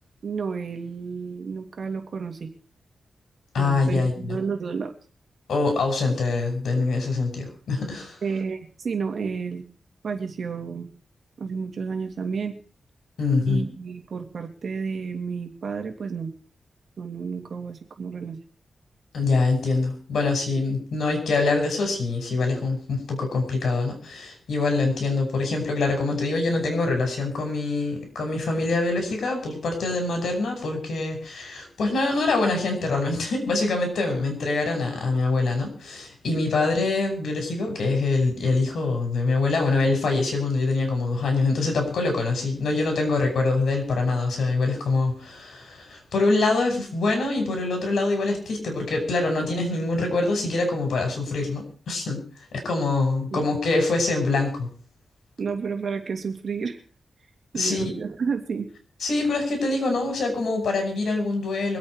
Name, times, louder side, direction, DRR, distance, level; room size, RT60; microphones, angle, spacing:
voice 1, 0.2-2.5 3.5-4.9 8.2-9.7 10.0-10.9 11.4-12.6 13.5-16.3 17.0-18.4 53.3-53.5 55.4-56.8 57.5-58.7, right 5 dB, 65° right, 5 dB, 2.6 m, -31 dB
voice 2, 3.5-4.1 5.5-8.2 13.2-13.6 19.1-52.2 52.5-54.7 57.5-57.8 59.0-61.8, left 3 dB, 90° left, 4 dB, 5.9 m, -24 dB
24.5 x 8.6 x 4.8 m, 0.41 s
wide cardioid pair, 100°, 0 cm